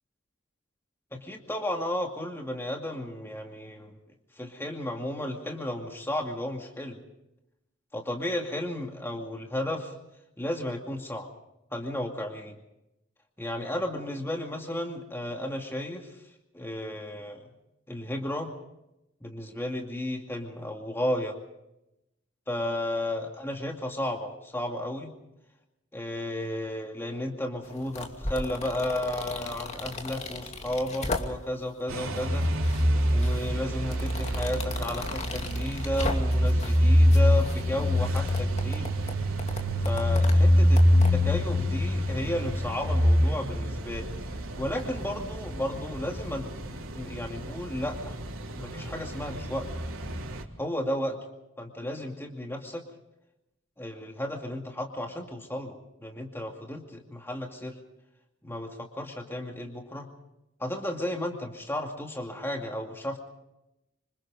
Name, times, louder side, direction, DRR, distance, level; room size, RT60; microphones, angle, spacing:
voice 1, 1.1-4.0 4.4-7.0 7.9-9.9 10.4-11.3 11.7-12.6 13.4-16.2 16.5-17.5 17.9-18.5 19.2-21.4 22.5-25.1 25.9-32.5 33.1-38.9 39.8-40.8 41.1-44.1 44.6-48.2 48.6-49.7 50.6-51.2 51.6-52.8 53.8-57.8 58.4-60.1 60.6-63.2, left 1 dB, 10° left, 2 dB, 2.4 m, -33 dB
sound 1, 27.6-31.6 32.1-32.8 33.2-36.8 37.1-41.1, left 2 dB, 30° left, 2.6 m, -37 dB
sound 2, 31.9-50.4, equal, 80° right, 3.4 m, -25 dB
26.5 x 26.0 x 3.9 m, 0.88 s
head